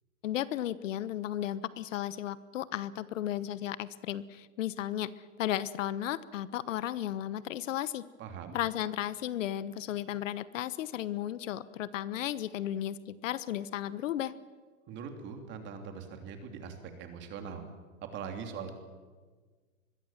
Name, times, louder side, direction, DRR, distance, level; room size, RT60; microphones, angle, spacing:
voice 1, 0.2-8.0 8.5-14.4, left 12 dB, 65° left, 16 dB, 1.1 m, -34 dB
voice 2, 8.2-8.6 14.9-17.6 18.1-18.7, right 6 dB, 25° right, 5 dB, 3.2 m, -41 dB
25.5 x 21.5 x 7.3 m, 1.4 s
supercardioid pair, 155°, 41 cm